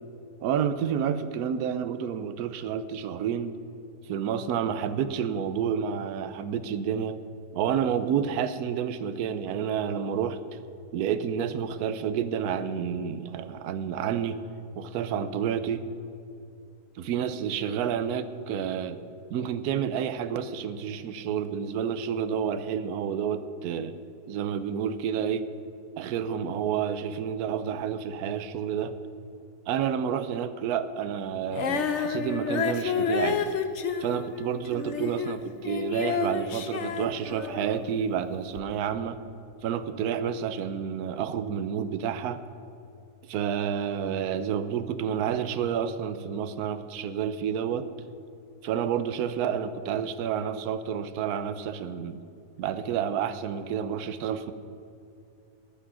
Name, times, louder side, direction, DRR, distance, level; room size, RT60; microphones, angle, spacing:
voice 1, 0.4-3.5 4.0-7.2 7.5-10.4 10.9-14.4 14.8-15.8 17.0-19.0 19.3-24.0 24.3-25.5 26.0-29.0 29.7-33.4 34.0-39.2 39.6-42.4 43.3-47.9 48.6-52.2 52.6-54.5, right 8 dB, 65° right, 11 dB, 1.1 m, -29 dB
Female singing, 31.5-37.9 38.6-38.7, left 6 dB, 55° left, 0.9 m, -30 dB
14.0 x 6.1 x 9.7 m, 2.7 s
omnidirectional pair, 1.9 m